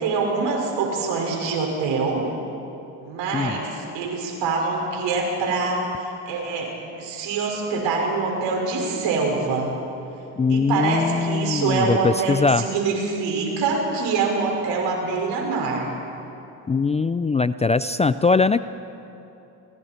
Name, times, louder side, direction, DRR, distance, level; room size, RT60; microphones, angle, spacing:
voice 1, 0.0-2.3 3.0-9.7 10.5-15.9, right 4 dB, 75° right, 0 dB, 5.5 m, -25 dB
voice 2, 10.4-12.6 16.7-18.6, left 4 dB, 15° left, 13 dB, 0.4 m, -21 dB
28.5 x 22.0 x 4.4 m, 2.8 s
supercardioid pair, 80°, 43 cm